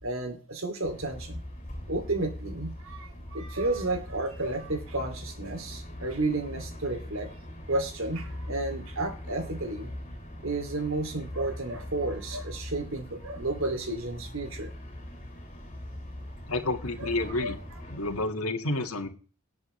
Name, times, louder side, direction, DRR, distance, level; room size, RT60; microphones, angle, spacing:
voice 1, 0.0-1.4 1.9-7.3 7.7-9.9 10.4-14.7 17.0-17.1 17.4-17.5, right 2 dB, 65° right, 6 dB, 2.7 m, -32 dB
sound 1, 0.8-18.3, left 1 dB, 35° left, 7.5 m, -41 dB
voice 2, 16.5-17.6 17.9-19.1, left 2 dB, 85° left, 6 dB, 1.9 m, -30 dB
18.5 x 8.6 x 3.2 m, 0.39 s
head